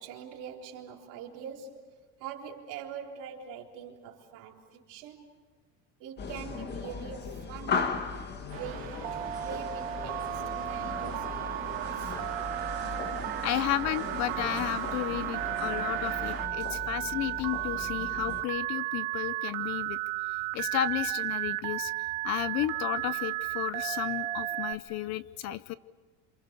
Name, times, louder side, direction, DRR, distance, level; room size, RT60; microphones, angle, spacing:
voice 1, 0.0-1.9 2.2-5.3 6.0-8.2 8.5-12.2, right 7 dB, 55° right, 4.0 m, -44 dB
sound 1, 6.2-18.4, left 5 dB, 25° left, 1.7 m, -38 dB
sound 2, 8.5-16.5, right 9 dB, 35° right, 2.5 m, -39 dB
Telephone, 9.0-24.7, right 15 dB, 80° right, 1.6 m, -34 dB
voice 2, 13.4-20.0 20.5-21.9 22.2-25.7, left 13 dB, 45° left, 0.7 m, -33 dB
27.5 x 27.5 x 6.9 m
cardioid pair, 170°, 38 cm